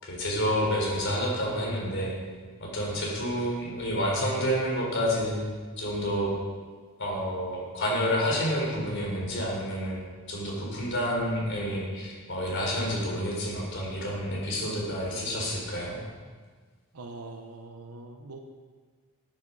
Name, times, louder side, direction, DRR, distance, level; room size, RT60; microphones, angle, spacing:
voice 1, 0.0-2.1 2.6-5.4 5.8-6.3 7.0-10.0 10.3-16.0, equal, 60° left, -3 dB, 4.3 m, -29 dB
voice 2, 16.9-18.4, right 3 dB, 85° right, 3 dB, 1.0 m, -43 dB
13.0 x 9.0 x 4.8 m, 1.5 s
head